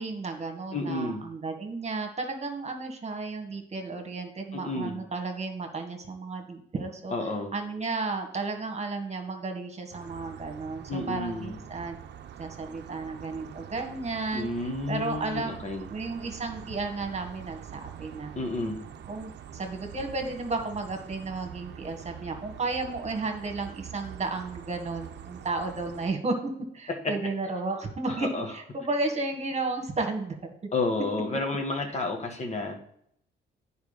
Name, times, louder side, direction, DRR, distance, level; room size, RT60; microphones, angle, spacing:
voice 1, 0.0-7.1 7.5-12.0 12.4-14.5 14.9-15.5 15.9-18.3 19.1-30.7 31.9-32.0, right 3 dB, 35° right, 3 dB, 1.7 m, -33 dB
voice 2, 0.7-1.3 4.5-5.0 7.1-7.5 10.9-11.6 14.3-15.9 18.3-18.8 26.9-27.1 28.1-28.5 30.7-32.8, left 2 dB, 35° left, 2 dB, 1.6 m, -31 dB
sound 1, 9.9-26.1, right 9 dB, 60° right, 0.7 m, -45 dB
9.2 x 4.8 x 5.2 m, 0.70 s
cardioid pair, 90°, 20 cm